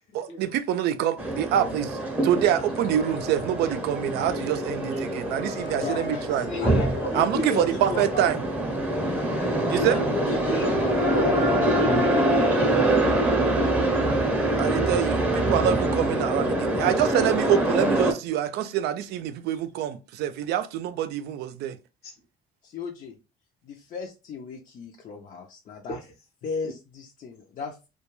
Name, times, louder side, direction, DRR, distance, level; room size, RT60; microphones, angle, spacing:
voice 1, 0.1-6.5 7.1-8.4 9.7-10.0 14.6-21.8, right 10 dB, 75° right, 0.4 m, -26 dB
sound 1, 1.2-18.1, right 1 dB, 10° right, 0.6 m, -25 dB
sound 2, 2.5-11.0, left 4 dB, 85° left, 1.0 m, -43 dB
voice 2, 5.7-6.8 7.3-8.3 9.7-11.9 22.6-23.2 23.6-26.0 26.4-27.9, left 5 dB, 50° left, 0.5 m, -36 dB
voice 3, 6.5-7.7 9.4-10.7 10.9-12.3 25.9-26.0, left 2 dB, 70° left, 0.8 m, -33 dB
2.2 x 2.2 x 3.0 m
cardioid pair, 110°, 17 cm